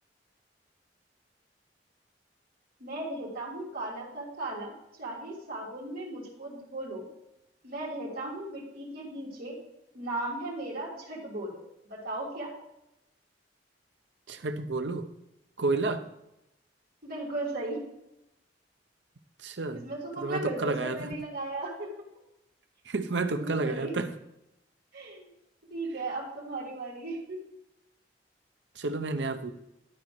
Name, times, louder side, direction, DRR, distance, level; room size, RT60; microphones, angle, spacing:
voice 1, 2.8-4.7 5.0-7.1 7.6-9.6 9.9-12.5 17.0-17.8 19.6-21.9 23.2-23.9 24.9-25.3 25.7-27.4, right 2 dB, 55° right, -4 dB, 3.1 m, -36 dB
voice 2, 14.3-15.1 15.6-16.1 19.4-19.8 20.2-21.1 22.9-24.1 28.8-29.5, right 3 dB, 80° right, 8 dB, 0.8 m, -30 dB
12.0 x 4.3 x 6.1 m, 0.89 s
head